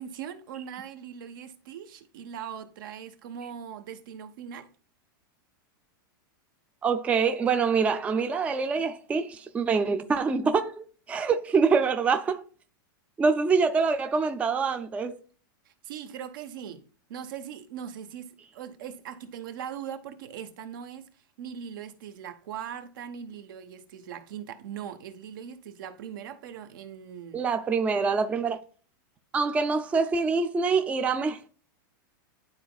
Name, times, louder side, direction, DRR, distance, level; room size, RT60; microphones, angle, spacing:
voice 1, 0.0-4.7 15.7-16.8 17.1-21.1 21.4-27.4, right 8 dB, 70° right, 1.1 m, -40 dB
voice 2, 6.8-12.4 13.2-15.2 27.3-28.6 29.3-31.5, right 5 dB, 10° right, 0.4 m, -25 dB
11.5 x 4.0 x 2.3 m
supercardioid pair, 155°, 12 cm